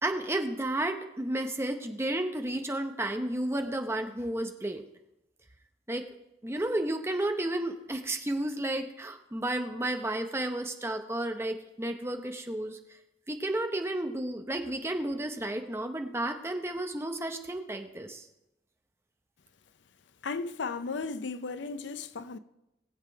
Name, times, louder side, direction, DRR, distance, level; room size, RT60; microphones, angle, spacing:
voice 1, 0.0-4.8 5.9-6.1 6.4-12.8 13.3-18.3, right 1 dB, 15° right, 0.8 m, -32 dB
voice 2, 20.2-22.4, left 4 dB, 75° left, 0.6 m, -35 dB
20.0 x 7.5 x 4.6 m
head